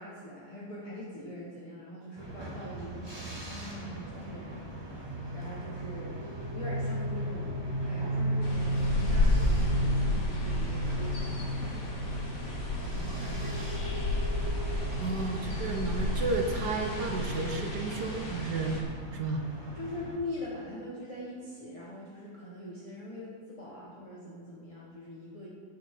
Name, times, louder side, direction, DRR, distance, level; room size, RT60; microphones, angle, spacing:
voice 1, 0.0-6.2 6.5-7.5 7.8-12.0 12.8-13.7 19.7-25.5, left 1 dB, 20° left, -6 dB, 1.6 m, -43 dB
sound 1, 2.2-20.2, right 1 dB, 15° right, 1.7 m, -43 dB
sound 2, 4.5-19.2, equal, 35° right, 2.4 m, -35 dB
sound 3, 8.4-18.8, left 1 dB, 50° left, 2.3 m, -32 dB
voice 2, 15.0-18.8 19.1-19.4, right 3 dB, 70° right, 3 dB, 1.6 m, -32 dB
15.5 x 9.6 x 3.9 m, 2.2 s
omnidirectional pair, 1.9 m